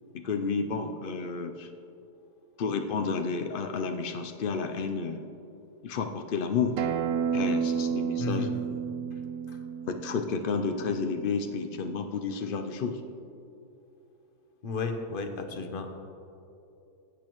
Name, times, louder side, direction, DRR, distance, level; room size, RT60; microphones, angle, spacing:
voice 1, 0.1-1.7 2.6-5.3 5.8-6.8 7.3-8.5 9.9-13.0, left 5 dB, 80° left, 5 dB, 0.4 m, -31 dB
Acoustic guitar, 6.8-12.0, right 7 dB, 65° right, 0.8 m, -32 dB
voice 2, 8.2-8.6 9.1-9.2 9.5-9.6 10.9-11.0 14.6-16.0, left 4 dB, 45° left, 6 dB, 0.8 m, -34 dB
16.0 x 8.5 x 3.0 m, 2.8 s
omnidirectional pair, 1.7 m